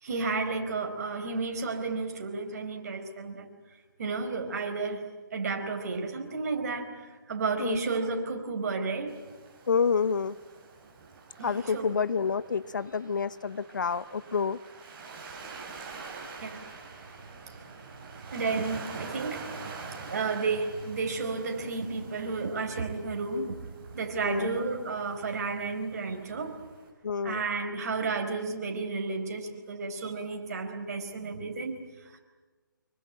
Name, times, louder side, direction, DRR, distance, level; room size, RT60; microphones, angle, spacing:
voice 1, 0.0-3.5 4.0-5.0 5.3-9.2 11.4-11.9 16.4-16.8 17.5-18.0 18.3-26.6 27.2-31.8 32.1-32.2, right 4 dB, 45° right, 5 dB, 4.5 m, -32 dB
Waves surf, 9.1-26.9, right 4 dB, 25° right, 5.2 m, -46 dB
voice 2, 9.7-10.4 11.4-14.6 24.2-24.6 27.0-27.5, left 6 dB, 60° left, 16 dB, 1.0 m, -28 dB
25.5 x 24.0 x 9.0 m, 1.3 s
figure-of-eight pair, 145°, 11 cm